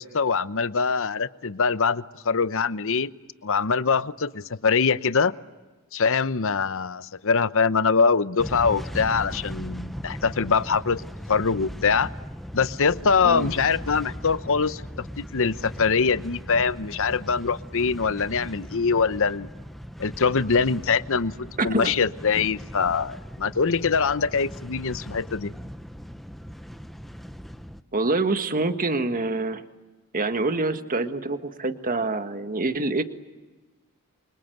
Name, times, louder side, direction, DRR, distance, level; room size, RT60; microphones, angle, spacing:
voice 1, 0.0-3.1 3.4-5.3 5.9-12.1 12.5-19.5 20.0-25.5, left 5 dB, 65° left, 15 dB, 0.8 m, -23 dB
sound 1, 8.4-27.8, equal, ahead, 0.9 m, -38 dB
voice 2, 21.6-21.9 27.9-29.6 30.1-33.0, right 3 dB, 40° right, 8 dB, 1.6 m, -26 dB
29.0 x 25.0 x 8.0 m, 1.2 s
head